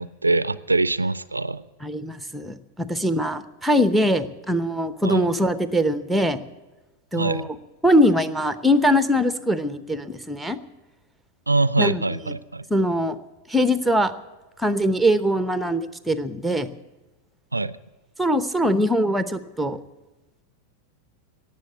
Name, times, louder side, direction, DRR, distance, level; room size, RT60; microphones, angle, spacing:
voice 1, 0.0-1.6 5.0-5.3 7.2-7.5 11.5-12.6 17.5-17.8, right 2 dB, 80° right, 17 dB, 0.4 m, -23 dB
voice 2, 1.8-6.4 7.1-7.5 7.8-10.6 11.8-12.3 12.7-13.2 13.5-14.1 14.6-16.7 18.2-19.8, equal, ahead, 12 dB, 0.8 m, -22 dB
18.0 x 7.4 x 9.6 m, 1.2 s
figure-of-eight pair, 90°, 0 cm